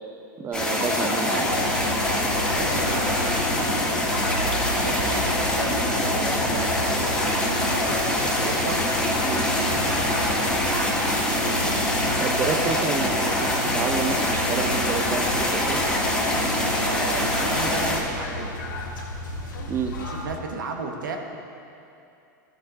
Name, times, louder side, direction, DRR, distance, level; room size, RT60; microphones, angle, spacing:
voice 1, 0.4-1.3 9.2-9.5 12.2-15.8 19.7-20.0, right 5 dB, 25° right, 5 dB, 0.6 m, -29 dB
sound 1, 0.5-18.0, left 1 dB, 5° left, 1.8 m, -24 dB
voice 2, 1.2-4.1 4.7-8.8 9.5-11.1 11.4-11.7 12.4-14.1 16.8-18.6 20.0-21.2, right 4 dB, 80° right, 3 dB, 1.2 m, -34 dB
sound 2, 1.4-20.3, left 1 dB, 85° left, 1.9 m, -33 dB
13.0 x 6.9 x 4.0 m, 2.7 s
hypercardioid pair, 105°, 10 cm